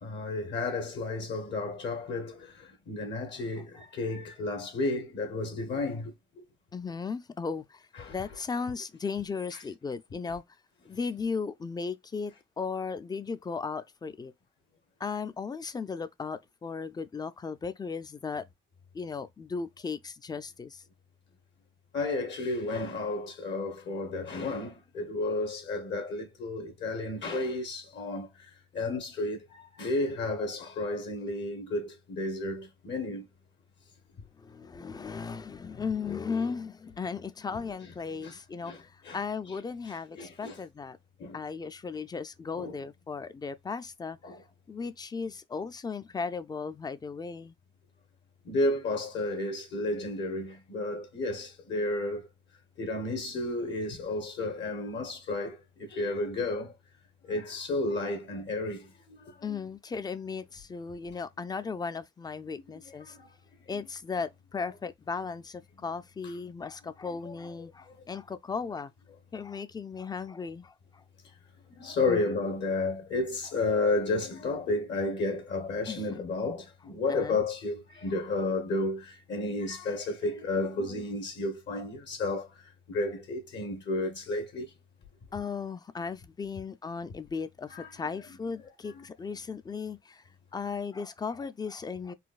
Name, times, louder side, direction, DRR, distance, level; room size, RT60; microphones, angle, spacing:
voice 1, 0.0-6.4 7.9-8.1 9.5-9.6 21.9-33.3 38.2-38.4 38.6-39.2 39.9-40.6 41.2-41.4 42.5-42.8 44.2-44.4 48.4-52.3 52.8-56.7 57.2-59.6 62.9-63.3 63.7-63.9 67.2-67.3 71.7-84.7 87.7-87.9 88.9-89.0, left 2 dB, 60° left, 1.0 m, -32 dB
voice 2, 6.7-10.4 10.9-14.3 15.0-18.4 18.9-20.8 34.4-41.0 41.3-44.2 44.7-47.5 59.4-63.2 63.7-68.9 69.3-71.0 72.1-72.3 75.9-76.4 77.1-77.4 85.3-90.2 90.5-92.1, left 5 dB, 20° left, 0.3 m, -36 dB
4.0 x 2.3 x 2.4 m
cardioid pair, 90°, 20 cm